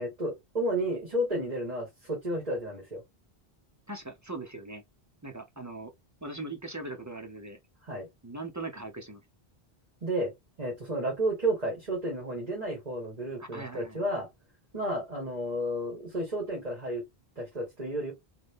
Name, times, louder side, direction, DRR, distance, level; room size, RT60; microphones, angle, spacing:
voice 1, 0.0-3.0 7.8-8.1 10.0-10.3 10.6-14.3 14.7-17.0 17.4-18.1, right 1 dB, 40° right, 1.6 m, -32 dB
voice 2, 3.9-4.8 5.2-5.9 6.2-7.6 8.2-9.2 13.4-14.0, right 2 dB, 25° right, 0.5 m, -40 dB
3.9 x 2.2 x 3.4 m
omnidirectional pair, 1.0 m